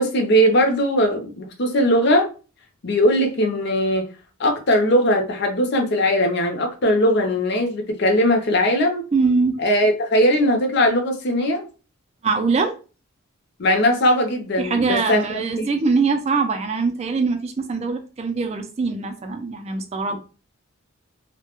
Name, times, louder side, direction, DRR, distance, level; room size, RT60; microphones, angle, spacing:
voice 1, 0.0-2.3 2.8-4.1 4.4-9.0 9.6-11.7 13.6-15.7, equal, 50° left, 0.6 m, -19 dB
voice 2, 9.1-9.6 12.2-12.7 14.6-20.2, right 4 dB, 30° right, 0.3 m, -22 dB
2.2 x 2.1 x 2.9 m
head